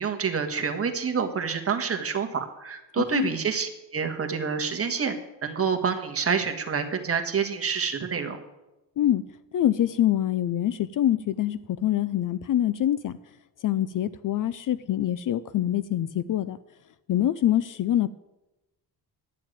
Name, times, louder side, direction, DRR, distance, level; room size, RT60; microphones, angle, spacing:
voice 1, 0.0-5.1 5.4-8.4, right 6 dB, 30° right, 5 dB, 1.5 m, -27 dB
voice 2, 9.5-13.2 13.6-16.6 17.1-18.1, left 12 dB, 50° left, 16 dB, 0.5 m, -25 dB
11.0 x 7.3 x 9.0 m, 0.99 s
cardioid pair, 145°, 44 cm